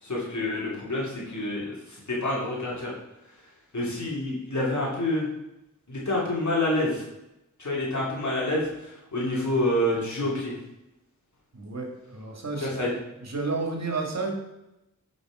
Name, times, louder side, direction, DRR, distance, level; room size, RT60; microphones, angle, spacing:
voice 1, 0.0-2.9 3.7-5.3 5.9-7.0 7.6-10.5 12.6-12.9, left 1 dB, 60° left, -5 dB, 2.8 m, -28 dB
voice 2, 11.5-12.7 13.2-14.3, right 3 dB, 50° right, 1 dB, 2.3 m, -31 dB
9.4 x 5.3 x 5.0 m, 0.91 s
wide cardioid pair, 100°, 33 cm